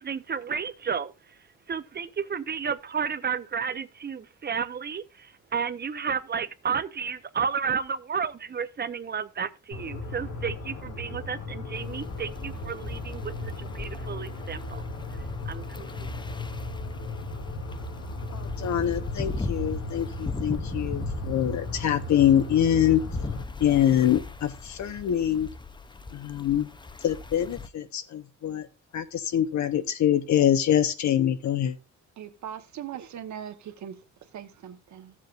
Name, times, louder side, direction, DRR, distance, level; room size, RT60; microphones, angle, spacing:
voice 1, 0.0-1.4 1.7-14.8 15.4-16.2, right 6 dB, 35° right, 0.8 m, -32 dB
sound 1, 9.7-23.4, left 1 dB, 90° left, 2.5 m, -36 dB
sound 2, 11.7-27.7, left 4 dB, 15° left, 0.6 m, -39 dB
voice 2, 18.3-23.0 23.6-25.5 26.1-26.7 27.0-28.7 28.9-31.8, left 10 dB, 70° left, 1.2 m, -24 dB
voice 3, 32.2-34.0 34.3-35.1, right 9 dB, 70° right, 1.3 m, -40 dB
14.5 x 7.5 x 2.5 m
cardioid pair, 90°, 30 cm